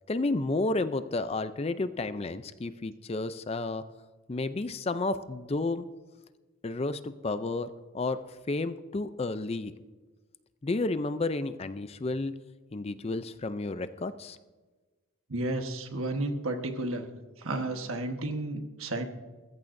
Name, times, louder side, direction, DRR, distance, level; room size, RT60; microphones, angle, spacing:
voice 1, 0.1-3.8 4.3-5.9 6.6-7.7 7.9-8.2 8.5-9.7 10.6-12.3 12.7-14.4, left 2 dB, 25° left, 12 dB, 0.4 m, -31 dB
voice 2, 15.3-17.1 17.4-19.0, right 2 dB, 70° right, 5 dB, 1.3 m, -32 dB
20.5 x 14.5 x 2.6 m, 1.3 s
head